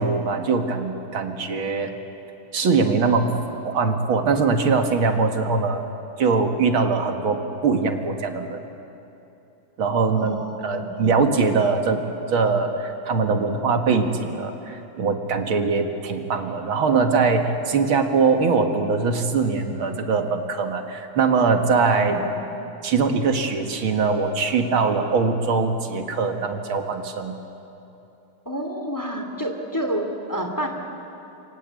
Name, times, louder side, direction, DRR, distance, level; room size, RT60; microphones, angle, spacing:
voice 1, 0.0-1.9 2.5-3.3 3.6-5.8 6.2-8.6 9.8-12.0 12.3-22.1 22.8-27.3, right 4 dB, 80° right, 5 dB, 2.7 m, -22 dB
voice 2, 10.1-10.9 21.9-22.3 28.5-30.7, equal, 10° left, 3 dB, 2.5 m, -29 dB
28.5 x 25.0 x 8.5 m, 2.9 s
omnidirectional pair, 2.2 m